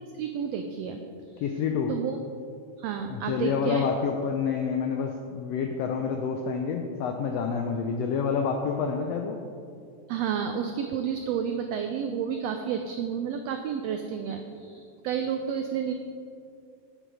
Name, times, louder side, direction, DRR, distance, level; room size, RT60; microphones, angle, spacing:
voice 1, 0.1-1.0 1.3-1.4 1.9-2.2 2.8-3.8 10.1-15.9, right 7 dB, 90° right, 6 dB, 1.4 m, -31 dB
voice 2, 1.4-1.9 3.1-9.4, left 6 dB, 80° left, 4 dB, 1.5 m, -28 dB
9.1 x 9.1 x 4.9 m, 2.4 s
omnidirectional pair, 3.5 m